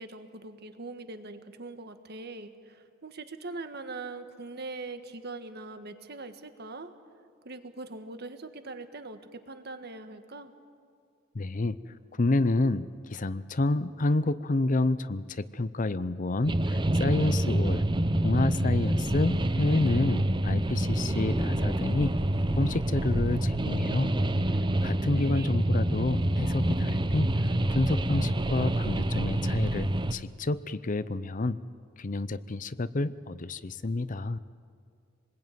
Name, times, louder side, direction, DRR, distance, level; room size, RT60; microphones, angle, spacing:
voice 1, 0.0-6.9 7.4-10.5 25.1-25.6, right 3 dB, 55° right, 8 dB, 1.6 m, -42 dB
voice 2, 11.3-11.8 12.2-17.8 18.2-22.1 22.6-24.1 24.8-31.6 32.0-34.4, left 2 dB, 40° left, 15 dB, 0.6 m, -29 dB
sound 1, 16.4-30.1, right 1 dB, 25° right, 0.8 m, -27 dB
27.5 x 21.0 x 9.4 m, 2.2 s
head